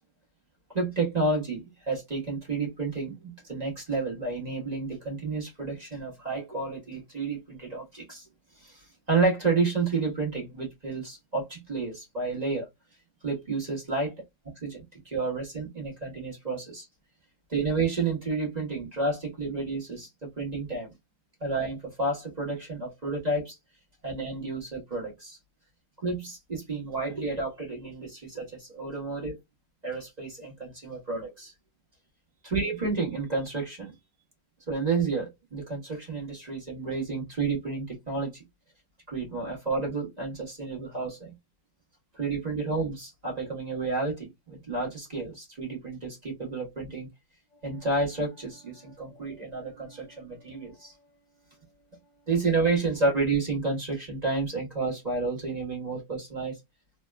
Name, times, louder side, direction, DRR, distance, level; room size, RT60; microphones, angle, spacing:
voice 1, 0.7-8.3 8.6-12.7 13.2-14.1 14.6-16.9 17.5-20.9 21.4-23.6 24.0-25.4 26.0-29.4 29.8-31.5 32.4-33.9 34.7-38.4 39.1-41.3 42.1-47.1 47.6-50.9 52.3-56.6, right 3 dB, 25° right, 1.1 m, -30 dB
3.2 x 2.7 x 2.2 m
omnidirectional pair, 2.0 m